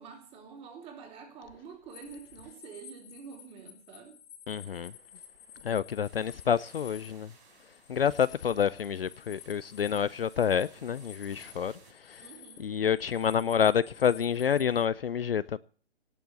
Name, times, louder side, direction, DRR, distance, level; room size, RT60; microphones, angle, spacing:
voice 1, 0.0-4.2 12.2-12.7, right 6 dB, 15° right, 3.2 m, -47 dB
sound 1, 1.9-14.8, left 8 dB, 35° left, 2.1 m, -52 dB
voice 2, 4.5-4.9 5.6-7.3 7.9-12.2 12.6-15.6, left 8 dB, 55° left, 0.6 m, -28 dB
sound 2, 6.0-11.9, right 5 dB, 40° right, 5.5 m, -60 dB
18.0 x 6.9 x 9.0 m
figure-of-eight pair, 135°, 34 cm